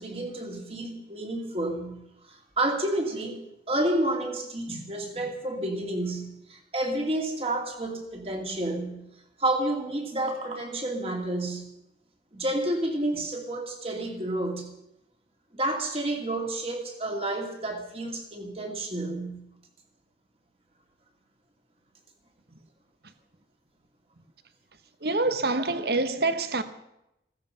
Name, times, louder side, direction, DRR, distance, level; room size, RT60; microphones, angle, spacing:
voice 1, 0.0-2.0 2.2-9.0 9.4-11.7 12.3-14.7 15.5-19.4, right 1 dB, 35° right, 2.4 m, -30 dB
voice 2, 25.0-26.6, right 2 dB, 60° right, 1.2 m, -26 dB
15.5 x 15.0 x 5.8 m
head